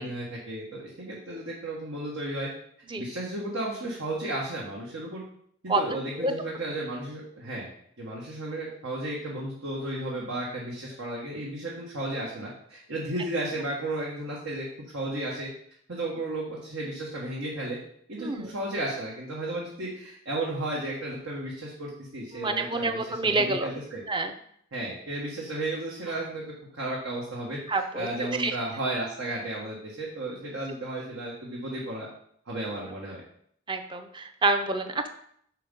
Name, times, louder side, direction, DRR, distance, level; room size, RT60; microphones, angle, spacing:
voice 1, 0.0-2.5 3.0-5.2 5.6-7.7 8.0-14.7 14.9-15.5 15.9-17.8 18.1-24.0 24.7-26.5 26.7-32.1 32.5-33.2, right 1 dB, 80° right, -4 dB, 1.5 m, -34 dB
voice 2, 18.2-18.5 22.3-23.7 24.1-24.3 27.7-28.1 28.4-28.6 33.7-35.1, right 2 dB, 25° right, 7 dB, 0.6 m, -27 dB
6.0 x 4.7 x 5.2 m, 0.67 s
head